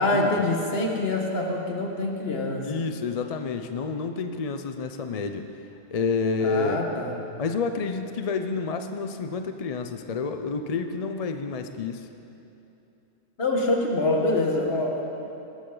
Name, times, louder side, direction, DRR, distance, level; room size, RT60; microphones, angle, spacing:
voice 1, 0.0-2.8 6.4-7.2 13.4-15.0, left 2 dB, 60° left, 1 dB, 1.7 m, -25 dB
voice 2, 2.6-5.5 5.9-6.8 7.4-12.1, left 4 dB, 45° left, 7 dB, 0.5 m, -29 dB
19.0 x 13.5 x 3.9 m, 2.9 s
omnidirectional pair, 1.2 m